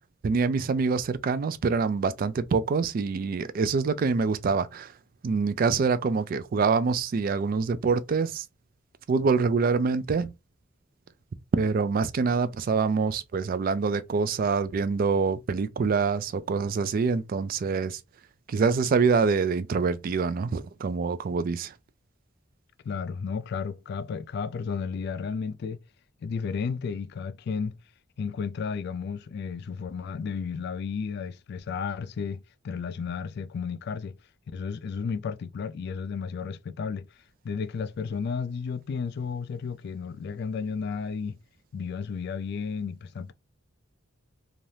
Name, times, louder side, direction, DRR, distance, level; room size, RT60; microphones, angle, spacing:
voice 1, 0.2-4.9 5.2-8.5 9.1-10.3 11.5-18.0 18.5-21.7, right 5 dB, 45° right, 0.3 m, -25 dB
voice 2, 22.8-25.8 26.2-27.8 28.2-34.2 34.5-37.1 37.4-41.4 41.7-43.3, left 5 dB, 55° left, 0.3 m, -33 dB
3.2 x 2.4 x 2.7 m
head